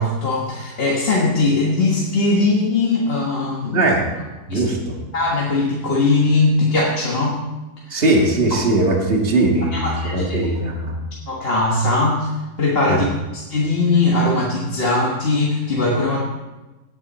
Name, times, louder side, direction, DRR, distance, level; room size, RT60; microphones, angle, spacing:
voice 1, 0.0-3.9 4.5-4.6 5.1-7.4 7.8-8.0 9.7-10.5 11.3-12.3 12.6-13.1 13.3-16.2, left 2 dB, 40° left, -3 dB, 1.7 m, -20 dB
voice 2, 4.5-5.0 7.9-11.0 12.9-13.0, right 2 dB, 35° right, 0 dB, 2.1 m, -19 dB
17.5 x 8.9 x 4.3 m, 1.1 s
omnidirectional pair, 1.7 m